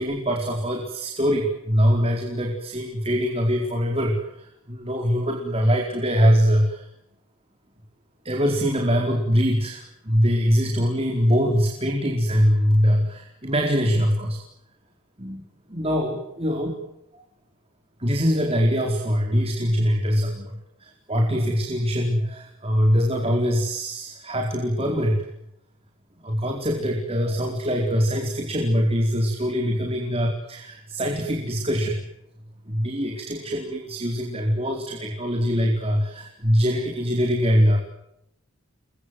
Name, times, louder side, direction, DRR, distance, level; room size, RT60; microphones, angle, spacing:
voice 1, 0.0-6.8 8.2-14.4 15.2-15.4 15.7-16.7 17.1-17.2 18.0-25.2 26.2-32.0 32.7-37.8, equal, 25° right, 1 dB, 4.6 m, -23 dB
29.5 x 24.5 x 8.0 m, 0.82 s
head